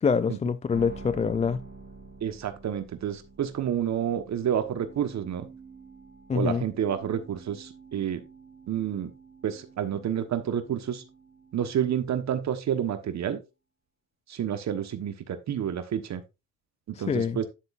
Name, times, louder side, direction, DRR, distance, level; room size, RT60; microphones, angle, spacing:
voice 1, 0.0-1.6 6.3-6.6 17.0-17.4, left 5 dB, 20° left, 0.4 m, -25 dB
sound 1, 0.7-13.0, right 4 dB, 30° right, 3.9 m, -49 dB
voice 2, 2.2-5.5 6.3-8.2 8.7-9.1 9.4-11.0 11.5-13.4 14.3-16.2 16.9-17.5, right 9 dB, 45° right, 1.3 m, -29 dB
9.7 x 7.7 x 2.5 m
supercardioid pair, 85°, 37 cm